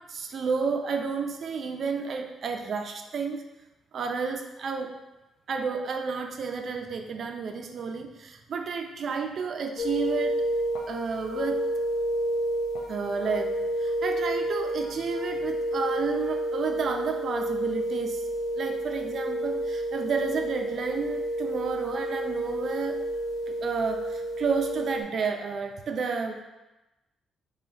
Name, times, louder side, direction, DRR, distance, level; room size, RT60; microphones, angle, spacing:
voice 1, 0.1-3.5 3.9-4.9 5.5-10.4 10.9-11.6 12.9-13.5 13.8-18.2 18.6-23.0 23.5-26.4, right 5 dB, 55° right, 4 dB, 0.5 m, -31 dB
sound 1, 9.8-25.0, right 1 dB, 85° left, 0.7 m, -30 dB
3.9 x 3.1 x 4.3 m, 1.0 s
cardioid pair, 100°, 0 cm